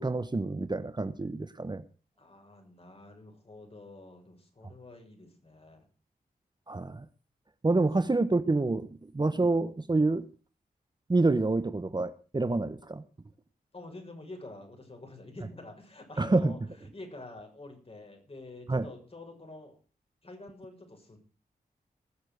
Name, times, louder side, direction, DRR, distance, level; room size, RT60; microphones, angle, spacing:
voice 1, 0.0-1.8 6.7-7.0 7.6-8.9 9.1-10.2 11.1-13.0 16.2-16.5 18.7-18.8, right 3 dB, 25° right, 12 dB, 1.0 m, -27 dB
voice 2, 2.2-5.9 7.8-8.1 13.7-19.8 20.2-21.2, left 2 dB, 35° left, 3 dB, 6.7 m, -48 dB
20.0 x 7.3 x 6.6 m, 0.38 s
cardioid pair, 65°, 16 cm